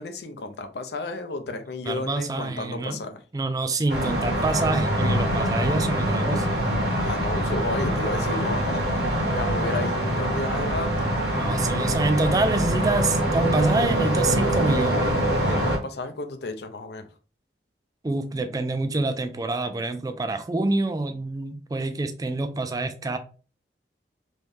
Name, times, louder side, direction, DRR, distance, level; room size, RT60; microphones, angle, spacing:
voice 1, 0.0-3.2 7.0-8.9 9.4-10.9 15.3-17.1, left 2 dB, 65° left, 0.5 m, -32 dB
voice 2, 1.9-3.0 3.3-6.5 11.4-15.2 18.0-23.2, right 2 dB, 20° right, 0.3 m, -26 dB
sound 1, 3.9-15.8, right 1 dB, 65° right, 1.1 m, -24 dB
3.1 x 2.6 x 3.4 m
head